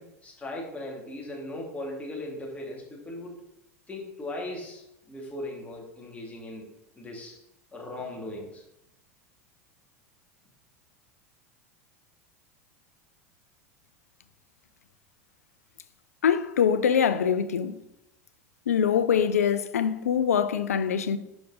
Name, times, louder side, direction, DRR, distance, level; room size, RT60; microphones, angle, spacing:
voice 1, 0.0-3.4 3.9-6.7 7.0-7.4 7.7-8.6, left 1 dB, 15° left, 2.2 m, -38 dB
voice 2, 16.2-17.7 18.7-21.2, left 7 dB, 85° left, 0.5 m, -24 dB
5.9 x 5.1 x 3.9 m
hypercardioid pair, 90°, 8 cm